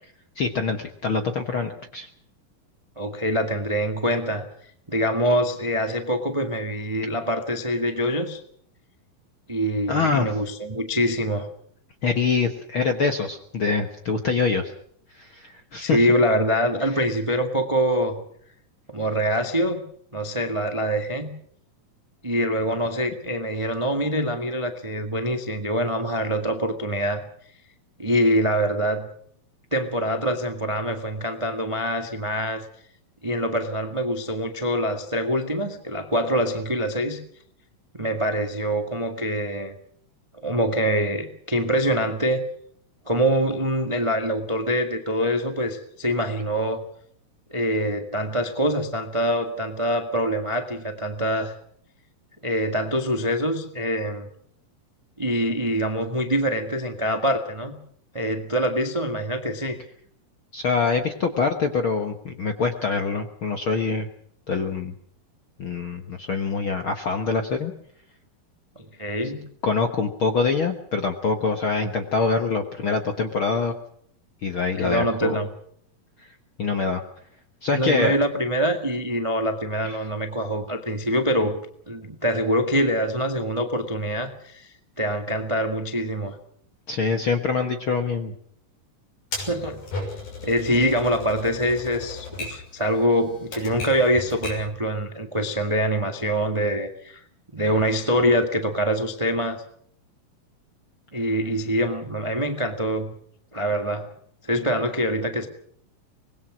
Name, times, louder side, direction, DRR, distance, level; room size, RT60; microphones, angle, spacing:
voice 1, 0.3-2.1 9.9-10.3 12.0-14.7 15.1-16.0 60.5-64.1 64.5-64.9 65.6-67.7 69.6-73.7 74.4-75.4 76.2-76.3 76.6-77.0 77.6-78.2 79.8-80.0 86.9-88.3, left 4 dB, 60° left, 6 dB, 1.4 m, -25 dB
voice 2, 3.0-4.5 4.9-8.4 9.5-11.5 15.8-18.2 18.9-19.8 20.1-21.3 22.2-27.2 28.0-29.1 29.7-32.6 33.2-37.2 37.9-39.7 40.4-42.4 43.1-46.8 47.5-51.5 52.4-54.3 55.2-57.7 58.1-59.8 68.7-69.4 74.8-75.5 77.7-81.6 81.9-86.3 89.4-89.8 90.4-97.2 97.5-99.6 101.1-103.1 103.5-104.1 104.4-105.5, equal, 25° right, 6 dB, 0.7 m, -24 dB
Typewriter, 89.3-94.8, left 2 dB, 75° left, 8.2 m, -36 dB
25.0 x 21.0 x 6.2 m, 0.64 s
omnidirectional pair, 4.2 m